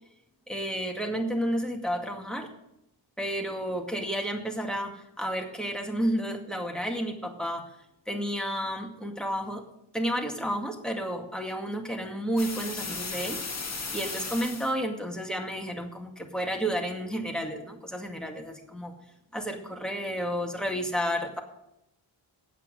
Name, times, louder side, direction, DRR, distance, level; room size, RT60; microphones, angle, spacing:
voice 1, 0.5-2.5 3.2-7.7 8.1-9.6 9.9-13.4 13.9-19.0 19.3-21.4, equal, ahead, 3 dB, 2.1 m, -31 dB
sound 1, 12.4-14.7, left 4 dB, 30° left, 1.7 m, -35 dB
8.8 x 8.4 x 9.2 m, 0.83 s
wide cardioid pair, 85°, 49 cm